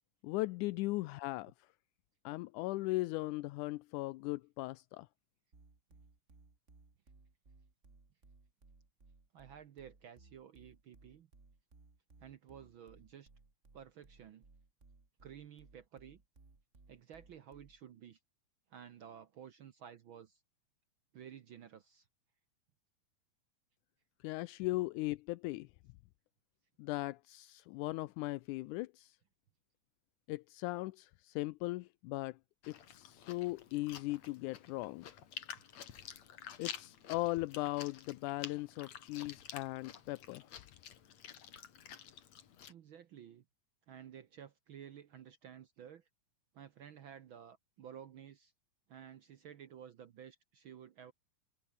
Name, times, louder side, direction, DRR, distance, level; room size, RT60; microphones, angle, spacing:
voice 1, 0.2-1.5 2.3-5.1 24.2-25.7 26.8-29.2 30.3-32.4 32.7-35.1 36.6-40.5, left 20 dB, 85° left, 2.0 m, -38 dB
sound 1, 5.5-17.9, right 3 dB, 25° right, 3.0 m, -63 dB
voice 2, 9.3-11.3 12.2-13.3 13.7-14.5 15.2-16.2 16.9-18.2 18.7-20.4 21.1-22.1 42.7-43.4 43.9-46.1 46.5-48.5 48.9-51.1, right 9 dB, 75° right, 1.2 m, -53 dB
Chewing mastication, 32.6-42.7, left 9 dB, 60° left, 3.1 m, -50 dB
omnidirectional pair, 3.6 m